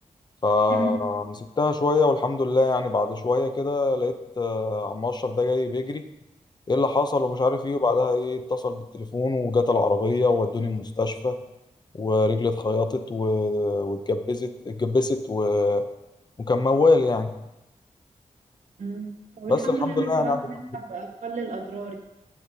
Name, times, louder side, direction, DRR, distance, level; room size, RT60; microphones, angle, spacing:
voice 1, 0.4-6.0 6.7-11.4 11.9-15.8 16.4-17.3 19.5-20.4, left 3 dB, 35° left, 8 dB, 0.6 m, -24 dB
voice 2, 19.4-22.0, right 2 dB, 75° right, 3 dB, 1.3 m, -31 dB
14.0 x 7.0 x 2.7 m, 0.93 s
wide cardioid pair, 135°, 12 cm